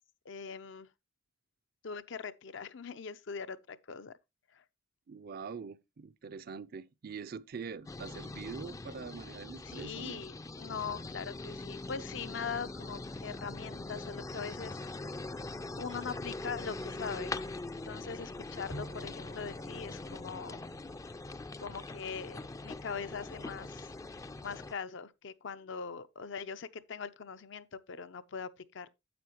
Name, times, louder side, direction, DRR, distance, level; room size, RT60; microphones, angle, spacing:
voice 1, 0.3-0.9 1.8-4.2 4.5-4.6 9.6-14.8 15.8-17.4 17.9-20.6 21.6-23.9 24.4-28.9, left 6 dB, 65° left, 0.6 m, -41 dB
voice 2, 5.1-10.2, right 5 dB, 50° right, 0.4 m, -44 dB
sound 1, 7.9-24.7, left 2 dB, 15° left, 0.4 m, -42 dB
Bowed string instrument, 18.7-22.4, equal, 90° left, 2.9 m, -51 dB
9.4 x 7.7 x 2.9 m
head